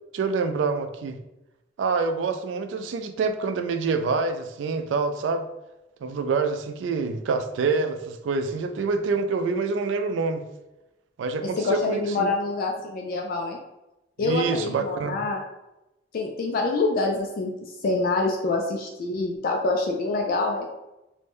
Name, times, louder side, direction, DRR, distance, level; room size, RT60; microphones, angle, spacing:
voice 1, 0.1-1.2 1.8-5.5 6.0-10.4 11.2-12.3 14.2-15.2, right 4 dB, 80° right, 8 dB, 0.3 m, -26 dB
voice 2, 11.4-13.6 14.2-15.4 16.1-20.7, left 3 dB, 50° left, 1 dB, 0.3 m, -26 dB
2.5 x 2.1 x 3.4 m, 0.96 s
head